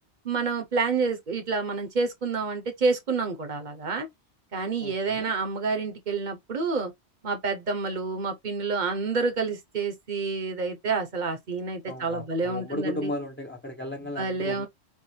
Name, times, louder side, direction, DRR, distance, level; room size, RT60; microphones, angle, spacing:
voice 1, 0.2-4.1 4.5-6.9 7.2-13.1 14.2-14.7, right 4 dB, 45° right, 1.1 m, -28 dB
voice 2, 4.8-5.3 11.9-14.7, left 1 dB, 10° left, 0.8 m, -35 dB
6.3 x 2.5 x 3.3 m
omnidirectional pair, 1.2 m